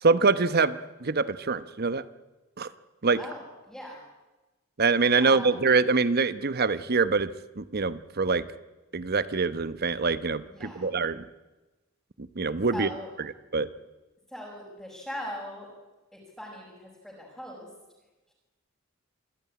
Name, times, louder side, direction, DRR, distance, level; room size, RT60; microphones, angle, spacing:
voice 1, 0.0-2.0 2.6-2.7 3.0-3.2 4.8-8.4 8.9-11.3 12.2-12.9 13.5-13.7, right 4 dB, 50° right, 14 dB, 1.0 m, -25 dB
voice 2, 3.2-4.0 5.2-5.6 10.5-10.9 12.7-13.1 14.3-15.7 16.1-17.7 18.3-18.4, equal, ahead, -6 dB, 5.7 m, -40 dB
26.5 x 15.5 x 9.8 m, 1.1 s
head